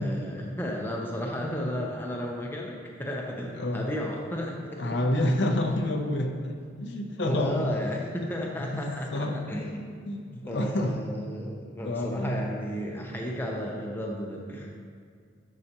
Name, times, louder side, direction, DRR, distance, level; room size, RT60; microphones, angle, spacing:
voice 1, 0.0-5.0 7.1-9.9 10.5-14.8, equal, 10° left, -1 dB, 0.7 m, -34 dB
voice 2, 3.6-3.9 4.8-7.7 8.6-9.4 10.0-11.0 11.8-12.5, left 1 dB, 60° left, 3 dB, 0.6 m, -29 dB
10.5 x 4.9 x 2.9 m, 2.2 s
head